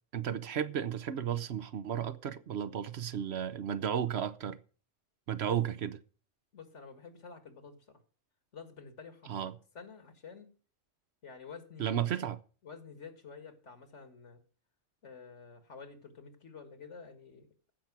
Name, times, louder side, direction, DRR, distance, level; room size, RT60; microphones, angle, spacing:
voice 1, 0.1-4.6 5.3-5.9 9.3-9.5 11.8-12.4, right 9 dB, 65° right, 0.9 m, -33 dB
voice 2, 6.5-8.0 8.5-10.5 11.2-12.1 12.6-14.4 15.0-17.5, left 5 dB, 75° left, 2.1 m, -50 dB
15.0 x 5.9 x 6.0 m
omnidirectional pair, 1.2 m